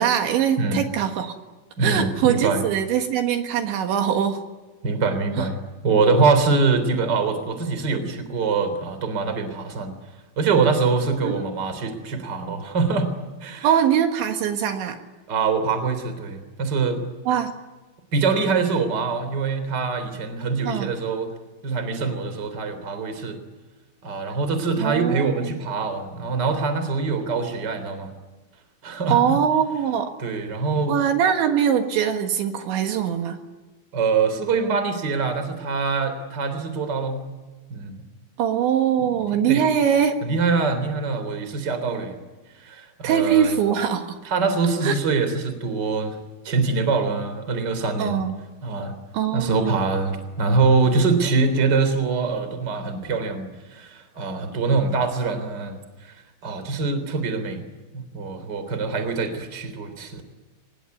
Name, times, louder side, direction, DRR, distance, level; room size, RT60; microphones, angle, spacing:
voice 1, 0.0-1.3 1.8-4.4 5.4-5.5 11.2-11.4 13.6-15.0 17.3-17.5 20.6-20.9 24.8-25.5 29.1-30.1 30.9-33.4 38.4-40.2 43.0-44.2 44.8-45.0 48.0-48.4 49.1-49.8, right 8 dB, 75° right, 5 dB, 3.8 m, -22 dB
voice 2, 1.8-2.6 4.8-5.6 5.8-9.9 10.4-13.1 13.4-13.7 15.3-17.0 18.1-21.3 21.6-23.4 24.0-28.1 28.8-29.3 30.2-31.0 33.9-37.3 37.7-37.9 39.1-39.6 40.2-42.2 42.6-43.5 44.3-46.2 46.4-48.2 48.6-48.9 49.3-56.1 56.4-57.6 57.9-60.2, right 4 dB, 25° right, 9 dB, 3.3 m, -24 dB
25.0 x 20.5 x 9.6 m, 1.3 s
omnidirectional pair, 5.6 m